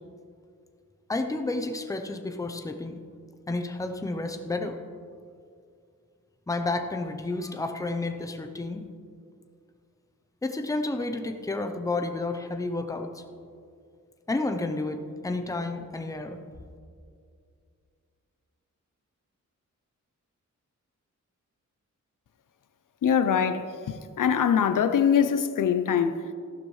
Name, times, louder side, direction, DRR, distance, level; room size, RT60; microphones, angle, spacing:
voice 1, 1.1-3.0 3.5-4.8 6.5-8.9 10.4-13.2 14.3-16.4, left 2 dB, 10° left, 0.6 m, -31 dB
voice 2, 23.0-26.2, left 7 dB, 80° left, 0.6 m, -23 dB
14.5 x 11.5 x 3.2 m
wide cardioid pair, 155°, 31 cm